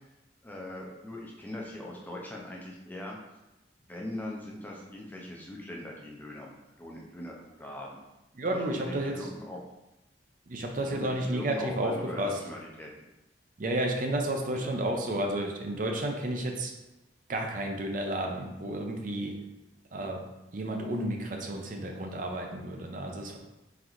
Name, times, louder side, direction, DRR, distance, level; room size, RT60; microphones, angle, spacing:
voice 1, 0.4-3.2 3.9-8.0 8.5-9.6 10.9-12.9 14.6-14.7, left 1 dB, 10° left, -2 dB, 0.5 m, -41 dB
voice 2, 8.4-9.3 10.5-12.4 13.6-16.7 17.3-19.3 19.9-20.2 20.5-23.4, right 1 dB, 45° right, 2 dB, 0.5 m, -31 dB
3.9 x 3.8 x 3.0 m, 1.0 s
head